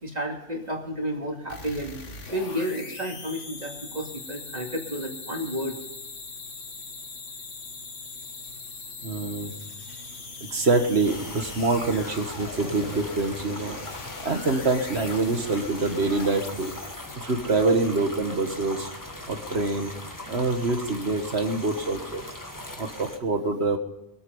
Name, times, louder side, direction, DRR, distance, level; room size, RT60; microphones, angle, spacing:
voice 1, 0.0-2.0 2.3-5.8, equal, 35° right, 0 dB, 2.8 m, -31 dB
sound 1, 1.5-17.4, left 4 dB, 90° left, 1.9 m, -41 dB
voice 2, 9.0-9.5 9.9-10.0 10.4-13.8 14.2-16.7 17.2-18.9 19.3-19.9 20.3-22.2 22.8-23.8, right 3 dB, 60° right, 5 dB, 1.8 m, -25 dB
sound 2, 11.0-23.2, left 1 dB, 15° left, 1.5 m, -40 dB
23.0 x 9.1 x 5.5 m, 0.96 s
omnidirectional pair, 1.2 m